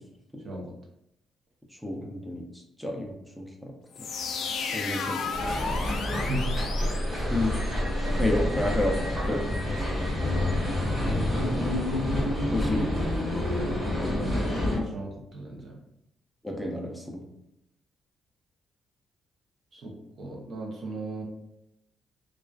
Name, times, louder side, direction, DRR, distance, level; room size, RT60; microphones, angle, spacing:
voice 1, 1.8-2.4 2.8-3.5 4.7-5.5 7.3-7.5 8.2-8.9 9.3-9.4 10.0-10.4 11.4-11.7 12.5-12.9 16.4-17.2, left 2 dB, ahead, 0 dB, 0.4 m, -30 dB
sound 1, 3.9-7.7, left 4 dB, 70° left, 0.3 m, -33 dB
sound 2, 5.3-14.8, left 1 dB, 20° right, 1.4 m, -28 dB
voice 2, 8.3-8.9 9.2-9.6 14.2-15.8 19.7-21.2, right 1 dB, 60° right, -1 dB, 0.7 m, -37 dB
2.3 x 2.2 x 2.3 m, 0.81 s
cardioid pair, 90°, 0 cm